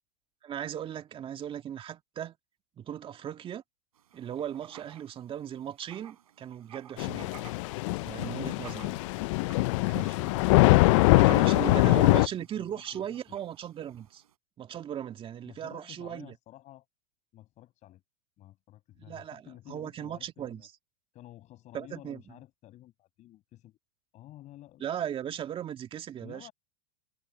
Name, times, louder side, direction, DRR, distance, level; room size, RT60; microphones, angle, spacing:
voice 1, 0.4-2.4 2.8-3.6 4.1-7.4 8.0-8.9 9.9-10.4 11.3-14.2 14.6-16.3 19.0-20.6 21.7-22.2 24.8-26.5, right 10 dB, 30° right, 2.1 m, -38 dB
Writing, 4.0-14.3, right 10 dB, 85° right, 6.8 m, -53 dB
Thunder / Rain, 7.0-12.3, left 23 dB, 60° left, 0.5 m, -23 dB
voice 2, 11.5-13.4 15.4-16.8 17.3-18.0 18.4-20.7 21.1-23.8 24.1-24.8 26.2-26.5, left 14 dB, 40° left, 6.1 m, -51 dB
hypercardioid pair, 110°, 18 cm